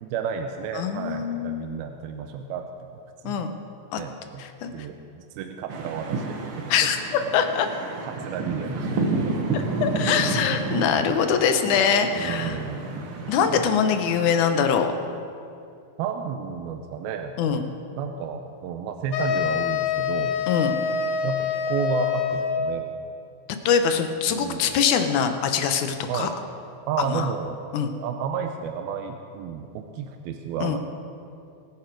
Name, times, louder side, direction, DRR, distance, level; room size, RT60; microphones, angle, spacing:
voice 1, 0.0-2.9 3.2-3.5 4.0-6.7 8.0-9.1 9.3-9.5 10.0-10.1 12.1-12.9 16.0-17.3 18.0-20.4 21.2-22.9 24.3-24.7 26.1-26.3 26.9-27.6 28.0-30.8, right 7 dB, 85° right, 5 dB, 2.6 m, -32 dB
voice 2, 0.8-1.8 3.2-3.5 3.9-4.0 4.4-4.7 6.7-7.7 9.5-12.6 13.3-14.9 17.4-17.6 20.5-20.8 23.7-26.3 27.0-27.3 27.7-27.9 30.6-30.8, left 7 dB, 70° left, 7 dB, 2.1 m, -23 dB
sound 1, 5.7-14.6, right 3 dB, 55° right, 1.5 m, -30 dB
sound 2, 19.1-22.8, left 7 dB, 90° left, 3.3 m, -26 dB
23.0 x 10.5 x 4.7 m, 2.5 s
omnidirectional pair, 4.2 m